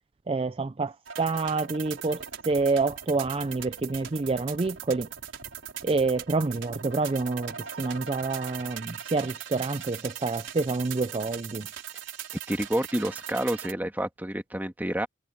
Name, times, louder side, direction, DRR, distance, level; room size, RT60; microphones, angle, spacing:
voice 1, 0.3-5.1 5.8-11.7, right 3 dB, 30° right, 0.4 m, -28 dB
sound 1, 1.1-13.7, right 9 dB, 80° right, 4.5 m, -40 dB
voice 2, 12.5-15.1, right 1 dB, 10° right, 1.6 m, -29 dB
head